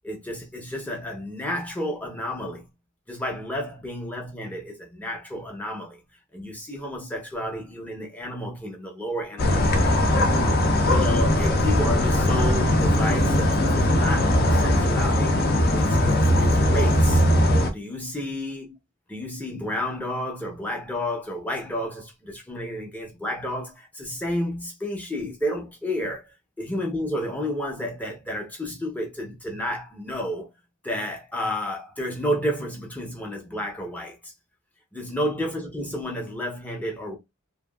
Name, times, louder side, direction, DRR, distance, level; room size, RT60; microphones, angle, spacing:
voice 1, 0.0-2.7 3.1-6.0 6.3-10.0 10.9-15.4 15.7-17.3 17.7-18.8 19.1-30.5 30.8-34.3 34.9-37.2, equal, 10° left, 0.6 m, -31 dB
sound 1, 9.4-17.7, left 1 dB, 45° left, 0.5 m, -20 dB
2.8 x 2.5 x 2.3 m
head